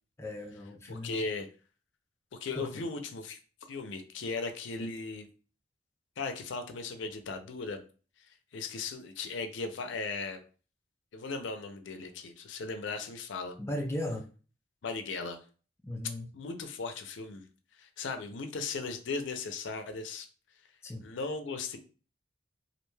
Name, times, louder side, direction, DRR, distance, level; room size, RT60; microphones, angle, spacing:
voice 1, 0.2-1.2 2.6-2.8 13.6-14.2 15.8-16.3 20.8-21.1, left 1 dB, 15° left, 0 dB, 0.3 m, -37 dB
voice 2, 0.9-1.5 2.4-3.4 3.7-5.3 6.2-7.8 8.3-10.4 11.1-13.6 14.8-15.4 16.3-17.5 17.8-20.3 21.0-21.8, left 4 dB, 75° left, 7 dB, 0.4 m, -37 dB
2.5 x 2.2 x 3.1 m, 0.37 s
head